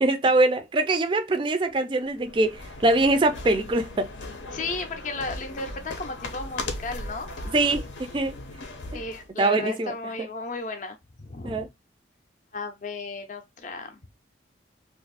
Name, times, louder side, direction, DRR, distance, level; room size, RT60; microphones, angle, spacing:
voice 1, 0.0-4.1 7.5-8.4 9.4-9.9 11.4-11.7, right 2 dB, 25° right, 0.3 m, -23 dB
sound 1, 2.1-9.3, left 2 dB, 90° left, 0.7 m, -38 dB
voice 2, 4.5-7.5 8.9-11.7 12.5-14.0, left 3 dB, 40° left, 0.5 m, -35 dB
2.6 x 2.4 x 3.9 m
head